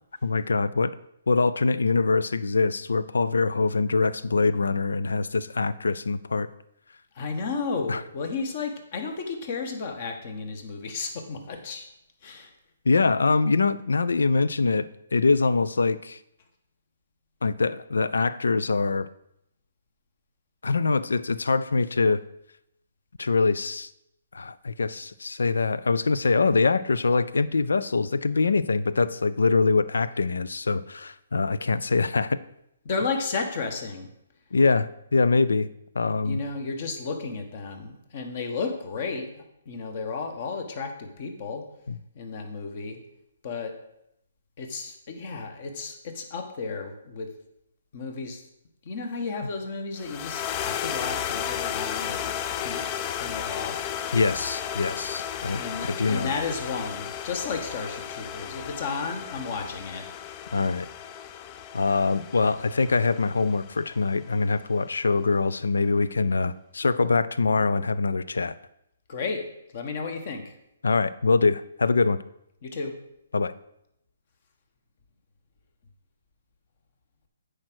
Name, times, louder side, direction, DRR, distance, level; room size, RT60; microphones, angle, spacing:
voice 1, 0.2-0.9 1.3-6.5 7.9-8.0 12.9-16.2 17.4-19.1 20.6-22.2 23.2-23.9 24.3-32.4 34.5-35.7 36.0-36.4 41.9-42.0 54.1-56.3 60.5-60.9 61.7-68.5 70.8-72.2 73.3-73.5, left 4 dB, 90° left, 17 dB, 0.4 m, -24 dB
voice 2, 7.1-11.9 12.2-12.5 32.8-34.1 36.2-41.6 42.1-43.0 43.4-43.7 44.6-47.3 47.9-48.4 48.8-52.8 53.1-53.9 55.6-60.5 69.1-69.4 69.7-70.5 72.6-72.9, left 4 dB, 45° left, 5 dB, 1.4 m, -33 dB
sound 1, 50.0-64.4, left 9 dB, 30° left, 0.4 m, -34 dB
8.5 x 5.0 x 6.2 m, 0.80 s
hypercardioid pair, 150°, 0 cm